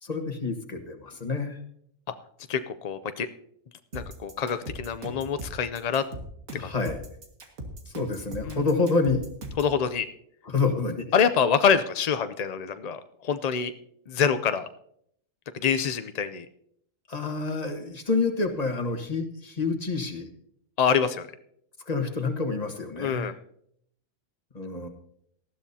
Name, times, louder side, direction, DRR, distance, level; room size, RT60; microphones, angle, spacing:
voice 1, 0.0-1.6 6.5-7.0 7.9-9.2 10.4-11.1 17.1-20.3 21.9-23.3 24.5-24.9, left 3 dB, 30° left, 4 dB, 1.5 m, -28 dB
voice 2, 2.5-3.3 3.9-6.0 6.5-6.7 8.5-8.6 9.6-10.1 11.1-13.7 14.1-14.7 15.5-16.5 20.8-21.3 23.0-23.3, left 7 dB, 60° left, 10 dB, 0.4 m, -26 dB
sound 1, 3.9-9.7, right 1 dB, 85° right, 2.2 m, -39 dB
19.0 x 13.0 x 2.8 m, 0.68 s
omnidirectional pair, 1.4 m